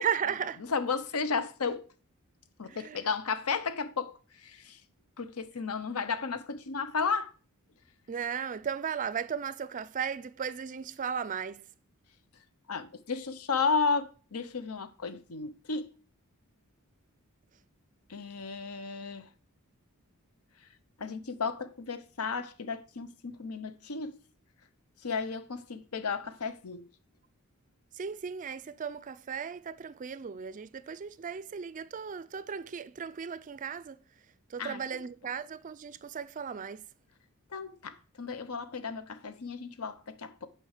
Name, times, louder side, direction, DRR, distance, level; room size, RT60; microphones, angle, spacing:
voice 1, 0.0-0.6 2.7-3.1 8.1-11.6 27.9-34.0 34.5-36.8, right 7 dB, 35° right, 0.4 m, -36 dB
voice 2, 0.7-1.8 2.6-4.1 4.4-4.8 5.2-7.3 12.7-15.9 18.1-19.3 21.0-24.1 25.0-26.9 34.6-34.8 37.5-40.5, left 5 dB, 80° left, 0.8 m, -33 dB
9.1 x 4.5 x 6.5 m
head